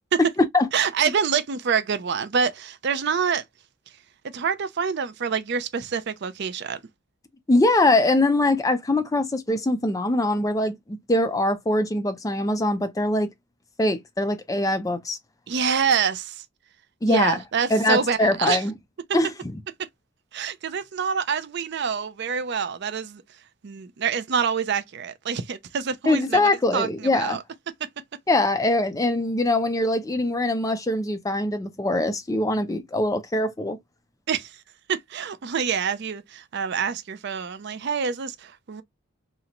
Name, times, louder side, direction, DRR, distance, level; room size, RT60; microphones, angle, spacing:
voice 1, 0.7-3.4 4.3-6.8 15.5-16.4 17.1-18.6 20.3-23.2 23.6-27.4 34.3-34.5 34.9-38.8, right 6 dB, 50° right, 0.4 m, -26 dB
voice 2, 7.5-10.8 11.1-13.3 13.8-15.2 17.0-17.4 17.7-18.7 19.1-19.3 26.1-27.4 28.3-33.8, left 2 dB, 15° left, 0.4 m, -22 dB
2.9 x 2.0 x 3.7 m
head